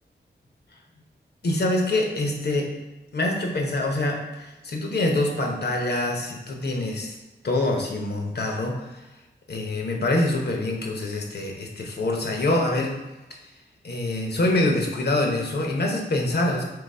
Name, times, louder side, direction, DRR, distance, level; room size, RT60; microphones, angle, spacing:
voice 1, 1.4-2.7 3.1-7.2 7.4-8.9 9.5-12.9 13.8-16.7, left 2 dB, 65° left, 1 dB, 0.9 m, -25 dB
3.9 x 3.0 x 4.2 m, 1.1 s
wide cardioid pair, 80°, 18 cm